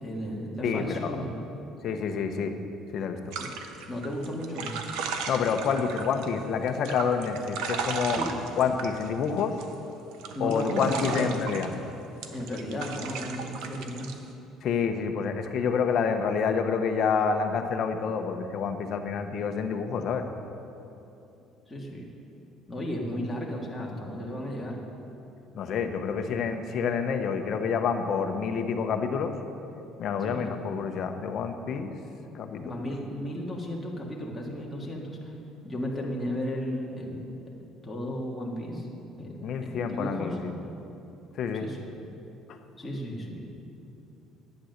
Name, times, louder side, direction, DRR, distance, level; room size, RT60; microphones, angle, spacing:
voice 1, 0.0-1.4 3.4-3.5 3.9-4.7 8.1-8.4 10.3-11.3 12.3-14.1 21.7-22.1 22.7-24.8 30.2-30.7 32.6-35.3 35.6-37.3 37.8-38.9 39.2-39.4 39.6-40.4 41.5-41.9 42.8-43.5, equal, 5° left, -3 dB, 1.7 m, -34 dB
voice 2, 0.6-1.2 1.8-2.5 2.9-3.3 5.3-8.2 8.6-9.5 10.4-11.7 14.6-20.2 25.5-29.3 30.0-31.9 32.3-32.8 39.4-40.5 41.4-41.7 42.5-42.6, left 6 dB, 45° left, 6 dB, 0.9 m, -28 dB
sound 1, 3.3-6.3 6.7-9.7 10.1-11.7 12.2-14.1, right 5 dB, 85° right, 1.0 m, -35 dB
11.5 x 9.2 x 6.5 m, 2.9 s
cardioid pair, 165°, 0 cm